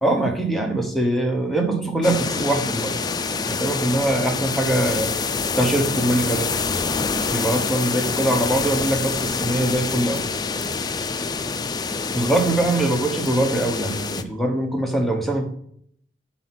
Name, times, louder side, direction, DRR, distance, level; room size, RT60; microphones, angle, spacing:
voice 1, 0.0-2.9 3.5-5.1 5.6-6.5 7.3-10.3 12.1-15.5, right 1 dB, ahead, 2 dB, 1.0 m, -22 dB
sound 1, 2.0-14.2, left 4 dB, 25° left, 0.4 m, -26 dB
7.8 x 4.2 x 5.8 m, 0.67 s
head